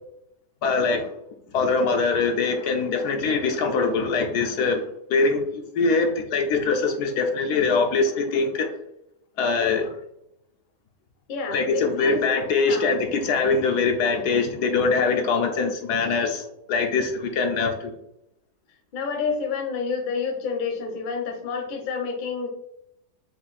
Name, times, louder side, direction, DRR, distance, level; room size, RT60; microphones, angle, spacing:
voice 1, 0.6-1.1 1.5-8.7 9.4-9.9 11.5-17.9, left 4 dB, 75° left, 4 dB, 1.2 m, -23 dB
voice 2, 11.3-12.2 12.7-12.9 15.1-15.5 18.9-22.5, left 5 dB, 40° left, 2 dB, 0.8 m, -29 dB
5.0 x 2.6 x 4.1 m, 0.78 s
omnidirectional pair, 1.8 m